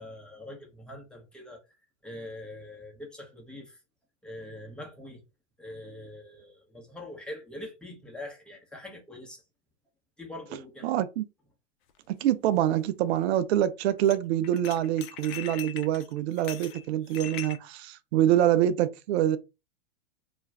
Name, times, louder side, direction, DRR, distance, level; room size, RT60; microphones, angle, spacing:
voice 1, 0.0-1.6 2.0-3.8 4.2-5.2 5.6-9.4 10.2-10.9, left 1 dB, ahead, 0.8 m, -43 dB
voice 2, 10.8-11.2 12.1-19.4, right 12 dB, 65° right, 0.5 m, -25 dB
sound 1, 11.9-12.0 14.1-14.2 14.4-17.6, left 10 dB, 45° left, 0.5 m, -41 dB
2.4 x 2.2 x 3.3 m
hypercardioid pair, 110°, 35 cm